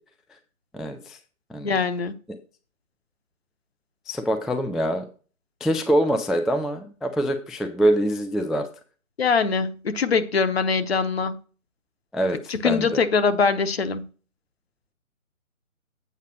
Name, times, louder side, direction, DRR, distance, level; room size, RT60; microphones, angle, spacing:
voice 1, 0.7-1.2 1.5-1.8 4.1-5.1 5.6-8.7 12.1-13.0, equal, ahead, 6 dB, 0.3 m, -24 dB
voice 2, 1.6-2.1 9.2-11.4 12.5-14.1, left 5 dB, 45° left, 11 dB, 0.9 m, -22 dB
8.1 x 4.9 x 6.2 m, 0.37 s
figure-of-eight pair, 155°, 42 cm